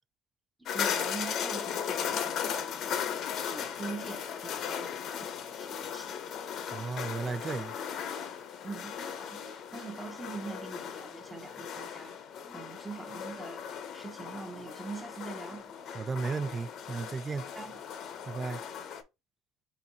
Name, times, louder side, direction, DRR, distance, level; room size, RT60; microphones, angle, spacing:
sound 1, 0.7-19.0, left 8 dB, 55° left, 0.7 m, -37 dB
voice 1, 0.7-2.7 3.5-6.1 8.6-15.8 17.5-17.8, right 4 dB, 10° right, 0.9 m, -43 dB
voice 2, 6.7-7.8 15.9-17.5 18.2-18.6, right 4 dB, 25° right, 0.3 m, -34 dB
4.2 x 3.7 x 2.8 m
supercardioid pair, 85°, 0 cm